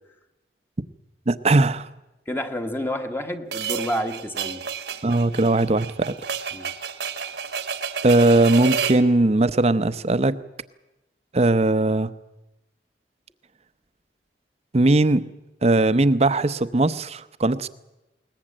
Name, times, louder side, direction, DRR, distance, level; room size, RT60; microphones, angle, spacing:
voice 1, 1.3-1.9 5.0-6.1 8.0-10.4 11.3-12.1 14.7-15.3 15.6-17.7, right 2 dB, 35° right, 15 dB, 0.8 m, -19 dB
voice 2, 2.3-4.6 6.5-6.7, equal, 15° left, 6 dB, 1.2 m, -29 dB
sound 1, 3.5-9.1, right 6 dB, 70° right, 1.4 m, -30 dB
21.0 x 19.5 x 8.8 m, 0.98 s
head